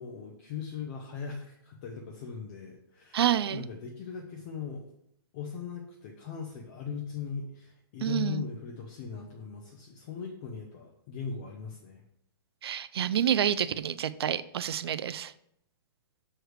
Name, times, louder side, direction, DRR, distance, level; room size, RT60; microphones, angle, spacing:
voice 1, 0.0-4.9 5.3-12.0, left 6 dB, 25° left, 0 dB, 0.5 m, -39 dB
voice 2, 3.1-3.6 8.0-8.5 12.6-15.3, right 9 dB, 85° right, 14 dB, 0.4 m, -28 dB
6.4 x 3.3 x 4.7 m, 0.74 s
hypercardioid pair, 170°, 13 cm